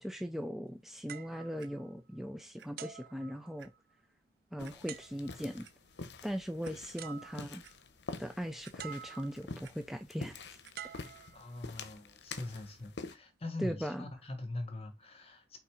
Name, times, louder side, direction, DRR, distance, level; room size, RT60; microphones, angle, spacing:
voice 1, 0.0-3.7 4.5-5.7 6.2-7.6 8.2-10.6 13.6-14.1, equal, ahead, 0.5 m, -39 dB
sound 1, 1.1-2.3 2.8-3.9 4.9-5.6 6.6-6.7 7.0-7.8 8.8-9.6 10.7-11.9 12.6-12.8, right 9 dB, 55° right, 0.5 m, -49 dB
Clock, 1.6-1.7 2.6-2.7 3.1-3.2 3.6-3.7 4.6-4.8 5.4-5.7 6.2-6.3 6.6-6.7 7.2-7.7 8.6-9.1 9.4-9.7 10.6-10.7 11.5-11.6, right 8 dB, 75° right, 0.8 m, -57 dB
sound 2, 4.6-13.1, left 3 dB, 65° left, 0.8 m, -47 dB
voice 2, 11.3-15.6, left 2 dB, 35° left, 1.6 m, -42 dB
5.6 x 3.8 x 4.9 m
head